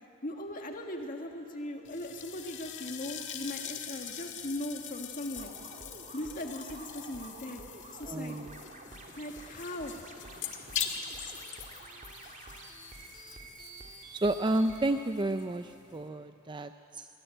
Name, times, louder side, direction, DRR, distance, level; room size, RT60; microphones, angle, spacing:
voice 1, 0.2-5.5 6.1-7.6 7.9-8.4 9.2-9.9, left 1 dB, 40° left, 3 dB, 1.7 m, -39 dB
sound 1, 1.8-16.1, left 8 dB, 55° left, 1.8 m, -43 dB
sound 2, 5.3-14.9, right 2 dB, 40° right, 2.9 m, -49 dB
voice 2, 8.0-8.6 14.1-17.1, right 1 dB, 20° right, 8 dB, 0.5 m, -31 dB
24.0 x 20.5 x 9.1 m, 2.7 s
head